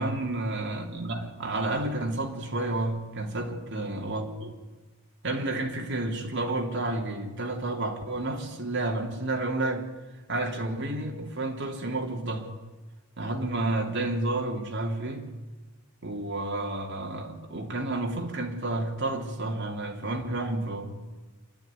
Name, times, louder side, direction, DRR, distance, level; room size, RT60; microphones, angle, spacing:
voice 1, 0.0-4.6 5.2-9.9 10.3-12.5 13.2-15.2 16.0-20.9, right 2 dB, 55° right, 3.2 m, -30 dB
27.0 x 12.5 x 9.9 m
head